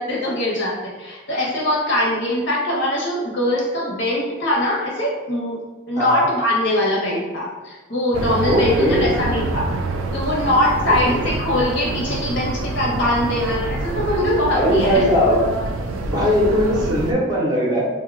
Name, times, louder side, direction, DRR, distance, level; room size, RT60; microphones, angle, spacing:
voice 1, 0.0-5.6 5.9-9.7 10.1-15.0, left 1 dB, 55° left, -3 dB, 0.8 m, -22 dB
sound 1, 8.1-17.1, right 2 dB, 75° right, 0.3 m, -26 dB
voice 2, 8.5-9.1 11.1-11.2 14.5-15.4 16.1-17.8, equal, 20° right, -5 dB, 0.6 m, -19 dB
2.6 x 2.1 x 3.6 m, 1.2 s
head